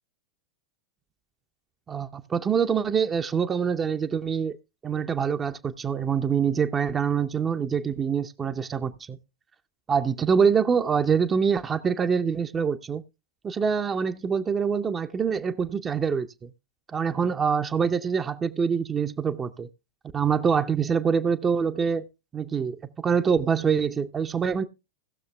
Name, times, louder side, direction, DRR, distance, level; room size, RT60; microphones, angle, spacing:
voice 1, 1.9-4.6 4.8-9.2 9.9-13.0 13.4-16.5 16.9-19.7 20.1-22.1 22.3-24.6, right 6 dB, 20° right, 0.7 m, -25 dB
17.5 x 6.5 x 3.3 m
figure-of-eight pair, 90°, 0 cm